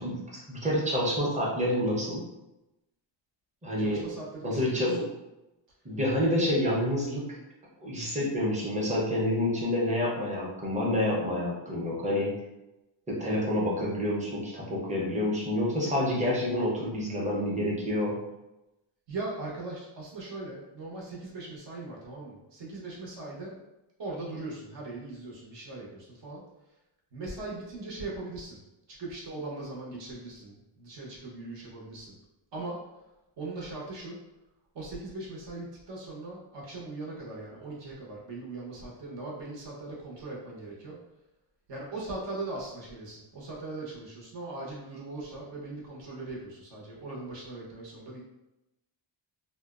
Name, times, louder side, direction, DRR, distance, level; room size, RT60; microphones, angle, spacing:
voice 1, 0.0-2.2 3.6-4.1 4.4-5.1 5.8-7.2 7.8-12.3 13.1-18.1, left 1 dB, 15° right, -4 dB, 0.6 m, -28 dB
voice 2, 3.8-5.0 19.1-23.6 24.0-26.4 27.1-28.6 28.9-32.1 32.5-32.8 33.4-34.2 34.7-41.0 41.7-48.2, right 2 dB, 60° right, -4 dB, 0.9 m, -40 dB
2.7 x 2.0 x 2.3 m, 0.95 s
wide cardioid pair, 130°, 49 cm